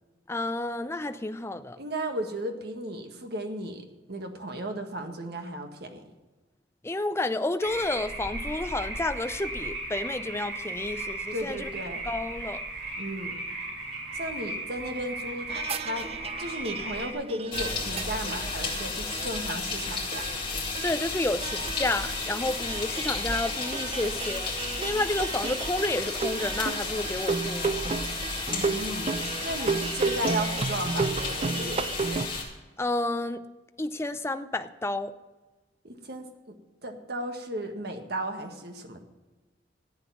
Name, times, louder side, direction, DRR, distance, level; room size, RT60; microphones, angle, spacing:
voice 1, 0.3-1.8 6.8-11.7 12.0-12.6 20.8-24.5 24.8-27.8 32.8-33.4 33.8-35.1, left 2 dB, 15° left, 0.5 m, -30 dB
voice 2, 1.8-6.0 11.3-12.0 13.0-13.4 14.1-16.1 16.4-20.3 28.5-29.2 29.4-31.9 35.8-36.5 36.8-39.1, right 1 dB, 60° right, 1.6 m, -35 dB
sound 1, 7.6-17.1, right 2 dB, 80° right, 4.6 m, -36 dB
sound 2, 15.5-32.3, right 4 dB, 35° right, 0.5 m, -33 dB
sound 3, 17.5-32.4, left 4 dB, 30° left, 3.8 m, -33 dB
14.5 x 9.0 x 6.0 m
head